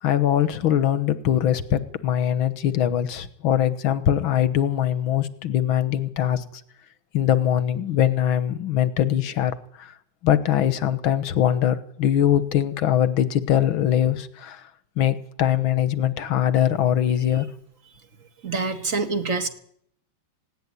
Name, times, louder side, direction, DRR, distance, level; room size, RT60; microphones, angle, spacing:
voice 1, 0.0-6.6 7.1-9.9 10.2-14.6 15.0-17.5, left 10 dB, 85° left, 13 dB, 2.0 m, -22 dB
voice 2, 18.4-19.5, right 4 dB, 40° right, 7 dB, 2.1 m, -25 dB
18.5 x 17.5 x 9.7 m, 0.65 s
omnidirectional pair, 2.2 m